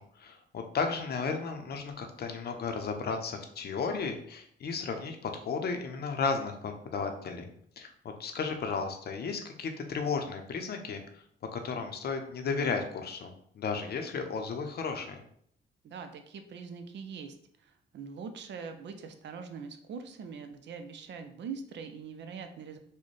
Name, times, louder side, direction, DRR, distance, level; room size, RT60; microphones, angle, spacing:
voice 1, 0.0-7.5 7.8-11.0 11.5-15.2, left 5 dB, 55° left, 5 dB, 0.6 m, -34 dB
voice 2, 15.8-22.8, right 5 dB, 65° right, 7 dB, 0.5 m, -43 dB
4.1 x 2.1 x 3.2 m, 0.65 s
cardioid pair, 90°, 20 cm